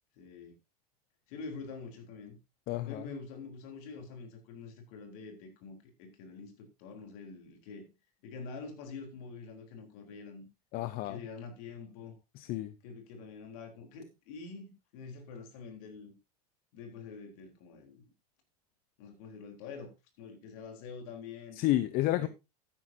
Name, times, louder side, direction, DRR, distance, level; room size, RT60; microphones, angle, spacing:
voice 1, 0.2-0.6 1.3-2.4 2.9-7.9 8.2-10.5 11.0-12.2 12.8-16.2 16.7-18.1 19.0-19.9 20.2-21.6 22.1-22.3, left 4 dB, 65° left, 3.8 m, -46 dB
voice 2, 2.7-3.0 10.7-11.2 12.4-12.7 21.6-22.3, left 16 dB, 50° left, 0.8 m, -30 dB
12.5 x 10.0 x 2.7 m
hypercardioid pair, 105°, 20 cm